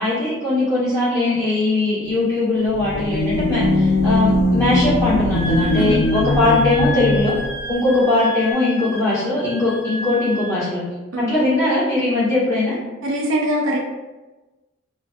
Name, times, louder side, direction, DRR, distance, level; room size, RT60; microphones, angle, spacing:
voice 1, 0.0-7.3 7.7-10.8 11.3-12.7, left 2 dB, 15° left, -11 dB, 1.1 m, -20 dB
sound 1, 2.7-7.5, left 2 dB, 75° left, 0.3 m, -20 dB
Wind instrument woodwind instrument, 5.3-10.6, left 1 dB, 10° right, 0.6 m, -32 dB
voice 2, 13.0-13.8, right 1 dB, 80° right, -1 dB, 0.5 m, -23 dB
2.4 x 2.3 x 2.3 m, 1.1 s
head